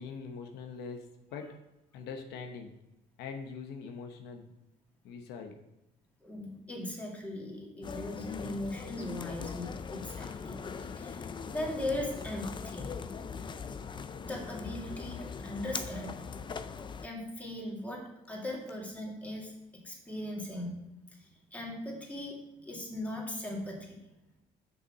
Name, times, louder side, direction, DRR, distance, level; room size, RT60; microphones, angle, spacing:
voice 1, 0.0-1.6 1.9-2.7 3.2-4.4 5.0-5.6, left 5 dB, 85° left, 4 dB, 1.0 m, -42 dB
voice 2, 6.2-11.2 11.5-12.9 14.2-16.1 17.0-19.5 19.8-20.8 21.5-22.4 22.7-23.9, left 1 dB, 10° left, -3 dB, 2.5 m, -38 dB
sound 1, 7.8-17.1, left 5 dB, 30° left, 0.5 m, -41 dB
6.7 x 5.7 x 6.0 m, 0.93 s
cardioid pair, 110°, 17 cm